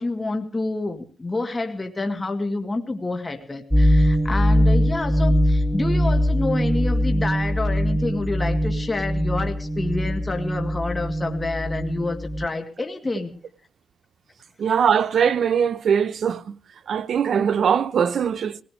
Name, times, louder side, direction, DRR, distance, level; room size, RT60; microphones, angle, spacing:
voice 1, 0.0-13.3, left 3 dB, 25° left, 2.2 m, -28 dB
sound 1, 3.7-12.5, equal, ahead, 0.9 m, -21 dB
voice 2, 14.6-16.6 16.9-18.6, right 7 dB, 70° right, 0.9 m, -21 dB
23.0 x 18.5 x 3.3 m
cardioid pair, 105°, 0 cm